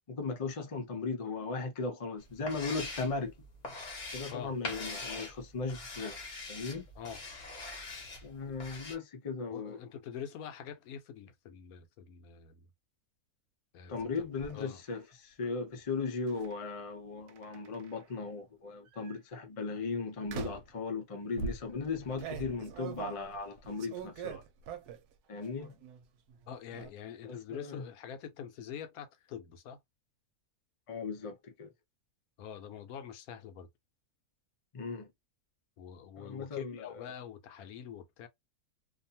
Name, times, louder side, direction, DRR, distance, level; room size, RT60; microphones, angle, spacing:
voice 1, 0.1-3.3 4.1-6.2 6.5-6.9 8.2-9.8 13.9-24.4 25.3-25.8 27.3-27.8 30.9-31.7 34.7-35.1 36.2-36.8, left 4 dB, 55° left, 0.3 m, -37 dB
sound 1, 2.2-9.0, left 3 dB, 40° left, 0.7 m, -43 dB
voice 2, 9.5-12.7 13.7-14.3 14.5-14.8 26.5-29.8 32.4-33.7 35.8-38.3, left 8 dB, 75° left, 1.0 m, -45 dB
sound 2, 14.0-14.5 16.3-16.5 17.3-18.1 18.9-19.2 20.3-20.8 21.4-25.1 25.5-26.0 26.3-26.9, right 5 dB, 85° right, 1.1 m, -42 dB
2.6 x 2.4 x 2.7 m
omnidirectional pair, 1.6 m